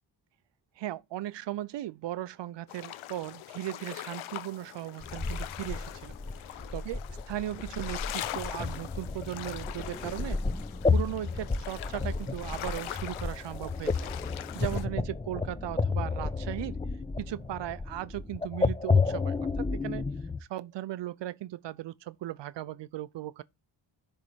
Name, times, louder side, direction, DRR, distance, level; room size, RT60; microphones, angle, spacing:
voice 1, 0.8-6.2 6.7-7.0 7.3-10.4 10.9-14.0 14.3-16.8 17.2-20.1 20.4-23.4, right 14 dB, 65° right, 0.6 m, -37 dB
sound 1, 2.7-14.9, left 13 dB, 90° left, 0.6 m, -42 dB
sound 2, 5.0-20.4, left 4 dB, 10° left, 0.5 m, -31 dB
10.5 x 3.6 x 3.0 m
supercardioid pair, 50°, 47 cm